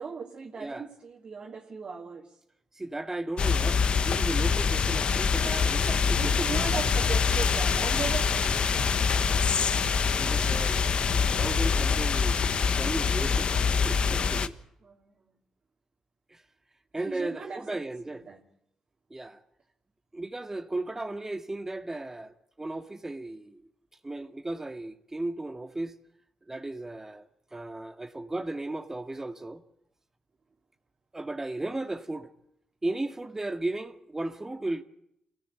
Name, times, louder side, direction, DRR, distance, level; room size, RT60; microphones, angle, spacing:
voice 1, 0.0-2.4 6.1-8.8 14.8-15.3 16.9-18.4, right 5 dB, 50° right, 2.9 m, -38 dB
voice 2, 0.6-0.9 2.7-6.6 9.4-14.6 16.3-16.4 16.9-18.3 19.1-19.4 20.1-23.6 24.0-25.9 26.5-27.2 27.5-29.6 31.1-32.3 32.8-34.8, right 2 dB, 20° right, 2.0 m, -35 dB
sound 1, 3.4-14.5, left 5 dB, 55° left, 1.2 m, -25 dB
26.0 x 17.5 x 9.3 m
hypercardioid pair, 50°, 2 cm